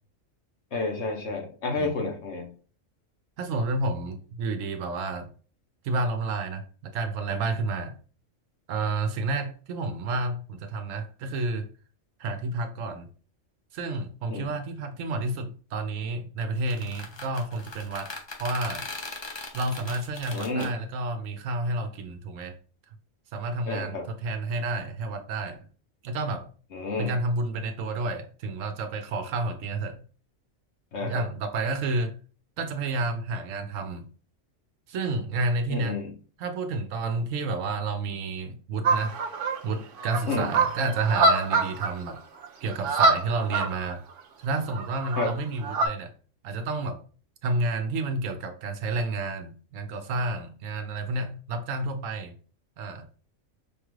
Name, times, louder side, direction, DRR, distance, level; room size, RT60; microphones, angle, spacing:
voice 1, 0.7-2.5 14.3-14.5 20.3-20.7 23.7-24.1 26.7-27.1 30.9-31.2 35.7-36.1 40.3-40.5 45.2-45.3, left 3 dB, 65° left, 1 dB, 1.1 m, -30 dB
voice 2, 1.8-2.1 3.4-5.3 5.8-7.9 8.7-11.7 12.2-13.1 13.7-18.1 18.4-18.9 19.5-22.5 23.3-25.7 26.0-26.5 27.0-30.0 31.0-32.2 32.6-34.1 34.9-36.0 36.4-39.2 39.6-42.2 42.6-44.0 44.4-46.1 46.4-47.0 47.4-52.4 52.8-53.0, right 2 dB, 80° right, 8 dB, 1.0 m, -30 dB
sound 1, 16.6-20.7, left 3 dB, 35° left, 0.4 m, -39 dB
sound 2, 38.8-39.6 40.0-41.9 42.2-42.3 42.4-42.5 42.7-43.9 44.7-45.9, right 3 dB, 55° right, 0.7 m, -24 dB
5.0 x 2.4 x 3.1 m, 0.40 s
omnidirectional pair, 1.3 m